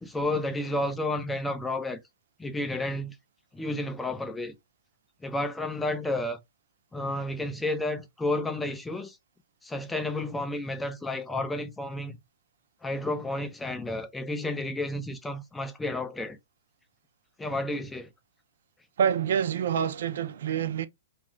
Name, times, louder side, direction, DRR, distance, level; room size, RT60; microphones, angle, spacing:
voice 1, 0.0-2.0 2.4-3.2 3.5-4.5 5.2-6.4 6.9-9.2 9.6-12.2 12.8-16.4 17.4-18.1, left 1 dB, 5° left, 0.4 m, -31 dB
voice 2, 19.0-20.9, right 8 dB, 70° right, 0.4 m, -27 dB
2.3 x 2.3 x 3.0 m
hypercardioid pair, 155°, 0 cm